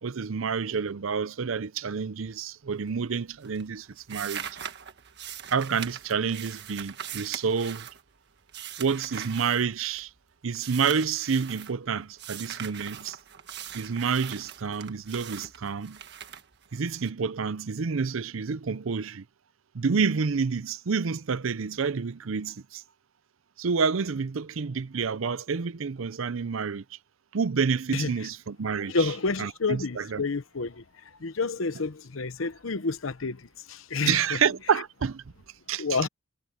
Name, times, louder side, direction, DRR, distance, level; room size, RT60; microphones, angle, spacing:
voice 1, 0.0-4.4 5.5-7.9 8.8-10.1 10.4-13.2 13.7-16.0 16.7-19.2 19.7-22.8 23.6-26.8 27.3-29.1 29.4-30.2 34.0-35.2 35.7-35.8, right 5 dB, 75° right, 0.6 m, -28 dB
sound 1, 2.7-3.2 3.4-10.2 10.5-11.7 12.2-17.1, right 9 dB, 55° right, 1.5 m, -41 dB
voice 2, 28.9-30.8 31.2-34.4 35.8-36.1, left 4 dB, 75° left, 0.9 m, -29 dB
head